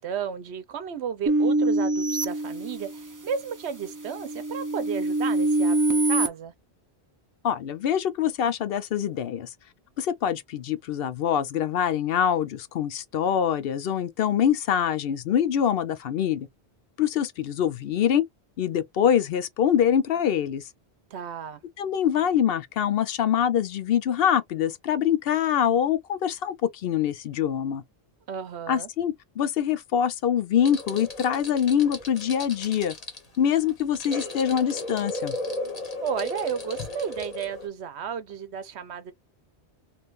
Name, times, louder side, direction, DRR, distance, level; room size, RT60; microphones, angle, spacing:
voice 1, 0.0-6.5 21.1-21.6 28.3-28.9 36.0-39.1, right 7 dB, 80° right, 1.0 m, -33 dB
sound 1, 1.3-3.2 3.7-6.3, right 2 dB, 30° right, 0.4 m, -25 dB
voice 2, 7.4-9.5 10.0-16.5 17.0-18.2 18.6-20.6 21.8-27.8 28.7-32.9 33.4-35.4, left 9 dB, 65° left, 0.7 m, -24 dB
sound 2, 30.6-37.7, left 2 dB, 35° left, 1.1 m, -35 dB
3.3 x 2.6 x 2.5 m
omnidirectional pair, 1.1 m